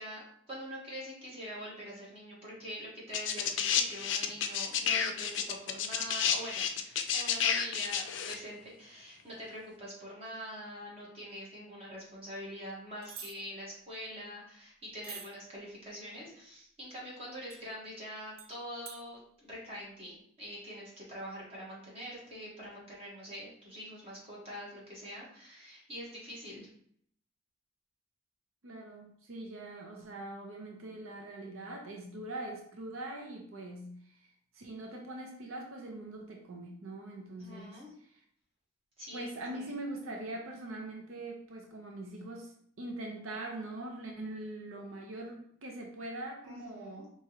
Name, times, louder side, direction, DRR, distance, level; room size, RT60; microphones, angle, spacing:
voice 1, 0.0-26.7 37.4-37.9 39.0-39.7 46.4-47.1, equal, 30° right, -6 dB, 1.5 m, -44 dB
sound 1, 3.1-8.3 9.4-9.5, left 8 dB, 60° left, 0.4 m, -30 dB
sound 2, 13.0-13.3 15.0-15.3 17.5-17.6 18.4-18.5 18.9-19.0, right 7 dB, 45° right, 0.5 m, -45 dB
voice 2, 28.6-38.2 39.1-47.1, right 1 dB, 85° right, 1 dB, 0.7 m, -42 dB
4.6 x 3.0 x 2.9 m, 0.64 s
head